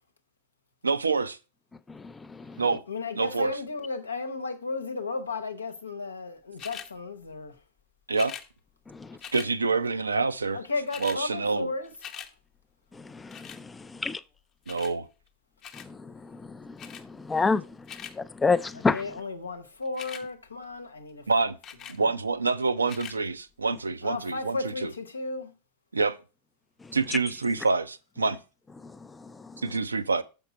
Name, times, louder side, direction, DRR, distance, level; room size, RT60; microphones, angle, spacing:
voice 1, 0.8-1.4 2.6-2.8 3.2-3.6 8.1-8.3 9.3-10.6 11.0-11.7 14.7-15.1 21.3-21.6 21.9-24.9 25.9-26.2 26.9-28.4 29.6-30.2, right 4 dB, 75° right, 0.4 m, -27 dB
voice 2, 2.9-7.5 10.5-12.1 18.9-21.2 24.0-25.5, left 3 dB, 75° left, 0.9 m, -34 dB
sound 1, 6.6-6.9 8.1-8.5 9.2-9.5 10.4-10.5 10.7-11.2 11.6-12.3 13.3-13.6 14.7-14.9 15.6-15.9 16.8-17.0 17.6-18.1 19.8-20.2 21.6-22.0 22.8-23.2 23.8-23.9, left 8 dB, 30° left, 0.8 m, -42 dB
voice 3, 13.8-14.2 15.8-17.7 18.2-19.0, left 4 dB, 10° left, 0.3 m, -28 dB
7.2 x 5.3 x 5.1 m
figure-of-eight pair, 90°, 0 cm